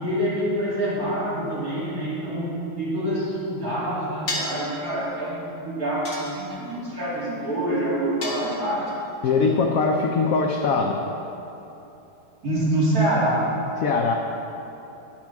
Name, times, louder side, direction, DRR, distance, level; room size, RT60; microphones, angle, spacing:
voice 1, 0.0-8.9 12.4-13.5, right 1 dB, 45° right, -8 dB, 3.0 m, -26 dB
sound 1, 4.3-4.7 6.0-6.8 8.2-8.9, left 2 dB, 40° left, 1.8 m, -32 dB
voice 2, 9.2-11.0 13.8-14.1, left 4 dB, 70° left, 2 dB, 0.8 m, -21 dB
11.0 x 5.9 x 5.9 m, 3.0 s
omnidirectional pair, 2.1 m